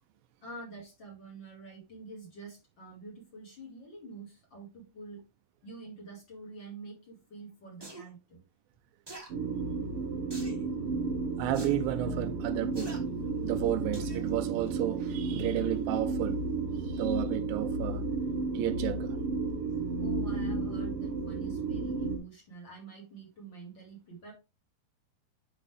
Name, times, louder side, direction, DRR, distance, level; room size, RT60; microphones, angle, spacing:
voice 1, 0.4-5.2 5.6-8.4 20.0-24.3, right 3 dB, 35° left, 2.5 m, -47 dB
sound 1, 7.8-8.0 9.1-9.3 10.3-10.6 11.5-11.7 12.7-13.0 13.9-14.2 14.7-14.8, right 2 dB, 15° right, 0.9 m, -44 dB
sound 2, 9.3-22.2, right 3 dB, 60° right, 1.6 m, -33 dB
voice 2, 11.4-13.0 13.4-16.4 16.8-18.1 18.5-19.2, right 14 dB, 80° right, 2.3 m, -32 dB
10.0 x 4.7 x 3.4 m
omnidirectional pair, 4.2 m